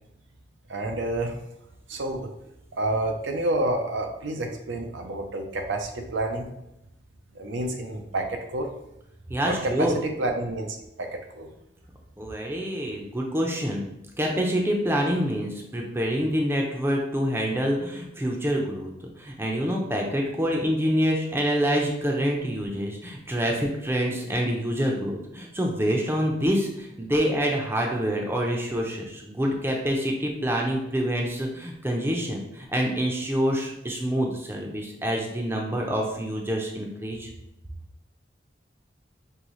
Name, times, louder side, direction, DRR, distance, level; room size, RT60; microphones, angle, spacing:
voice 1, 0.7-1.3 1.9-2.3 2.7-6.5 7.3-8.7 9.4-11.5, right 2 dB, 85° right, 3 dB, 0.7 m, -29 dB
voice 2, 9.3-10.0 12.2-13.8 14.2-18.9 19.2-37.3, equal, 15° right, 0 dB, 0.6 m, -26 dB
5.5 x 3.0 x 3.1 m, 0.85 s
head